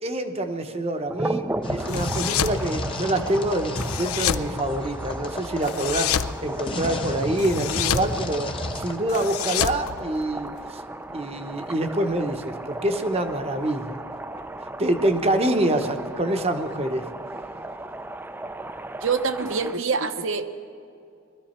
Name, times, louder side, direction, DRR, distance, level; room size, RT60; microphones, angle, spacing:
voice 1, 0.0-6.1 6.4-10.8 11.1-14.0 14.8-17.1, right 1 dB, 30° right, 6 dB, 0.8 m, -26 dB
sound 1, 1.1-19.8, right 2 dB, 10° right, 0.3 m, -36 dB
sound 2, 1.6-9.0, left 1 dB, 25° left, 0.8 m, -32 dB
sound 3, 1.9-2.6 3.8-4.5 5.6-6.3 7.4-8.1 9.1-10.6, left 10 dB, 80° left, 0.5 m, -27 dB
voice 2, 19.0-20.5, right 5 dB, 60° right, 9 dB, 0.8 m, -25 dB
20.5 x 13.5 x 4.3 m, 2.5 s
head